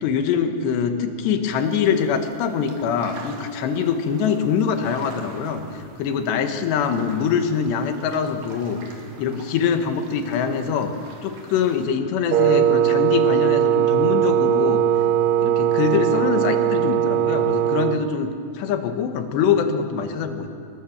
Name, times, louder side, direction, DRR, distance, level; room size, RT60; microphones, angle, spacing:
voice 1, 0.0-8.8 9.2-10.9 11.2-14.8 15.4-20.5, left 7 dB, 85° left, 7 dB, 3.6 m, -23 dB
sound 1, 1.5-11.9, right 3 dB, 55° right, 4.2 m, -45 dB
Wind instrument woodwind instrument, 12.3-18.1, right 10 dB, 85° right, 1.9 m, -19 dB
25.5 x 21.0 x 7.3 m, 2.5 s
omnidirectional pair, 4.8 m